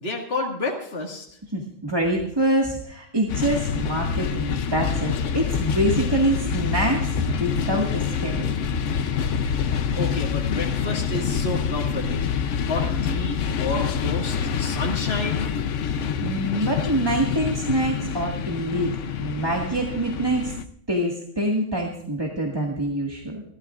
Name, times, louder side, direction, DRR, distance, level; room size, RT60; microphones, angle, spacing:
voice 1, 0.0-1.3 9.9-15.5, left 2 dB, 55° left, -1 dB, 2.1 m, -30 dB
voice 2, 1.5-8.6 16.2-20.5 20.9-23.4, right 1 dB, 20° right, -1 dB, 1.7 m, -25 dB
sound 1, 3.3-20.6, left 7 dB, 80° left, 1.1 m, -26 dB
28.0 x 12.5 x 2.4 m, 0.66 s
omnidirectional pair, 1.3 m